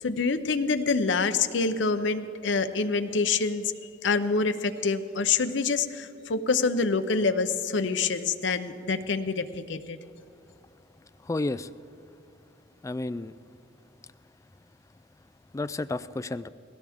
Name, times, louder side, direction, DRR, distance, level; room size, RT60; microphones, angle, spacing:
voice 1, 0.0-3.7 4.0-10.0, left 4 dB, 75° left, 9 dB, 0.7 m, -26 dB
voice 2, 11.2-11.7 12.8-13.3 15.5-16.5, left 2 dB, 15° left, 13 dB, 0.3 m, -31 dB
20.0 x 17.0 x 3.6 m, 2.8 s
head